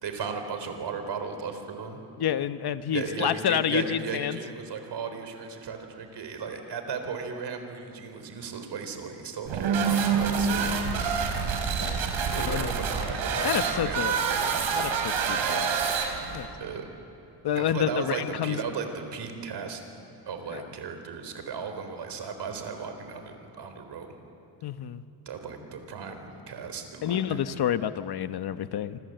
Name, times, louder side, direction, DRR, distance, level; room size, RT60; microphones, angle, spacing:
voice 1, 0.0-2.0 2.9-10.8 12.3-14.4 16.6-16.9 17.6-19.8 20.3-24.1 25.3-27.6, right 5 dB, 60° right, 7 dB, 4.1 m, -36 dB
voice 2, 2.2-4.4 10.3-10.4 11.8-12.0 12.4-12.7 13.4-14.1 14.7-15.9 16.3-16.5 17.4-18.6 20.5-20.6 24.6-25.0 27.0-29.0, left 9 dB, 55° left, 11 dB, 1.1 m, -29 dB
sound 1, 9.5-16.5, right 6 dB, 85° right, 4.2 m, -27 dB
27.5 x 26.5 x 8.0 m, 2.9 s
cardioid pair, 140°, 46 cm